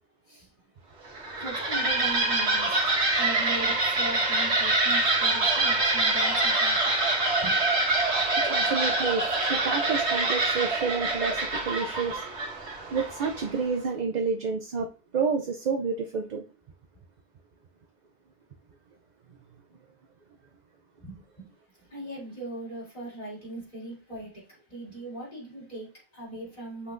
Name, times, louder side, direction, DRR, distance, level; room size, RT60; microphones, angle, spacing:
sound 1, 1.0-13.6, right 2 dB, 85° right, 1.8 m, -25 dB
voice 1, 1.4-2.8 3.2-6.9 7.4-7.6 21.0-21.5 21.9-26.9, right 1 dB, 40° left, 4.0 m, -39 dB
voice 2, 8.4-12.2 12.9-16.4, right 5 dB, 50° right, 0.7 m, -29 dB
8.0 x 5.7 x 2.5 m
omnidirectional pair, 1.1 m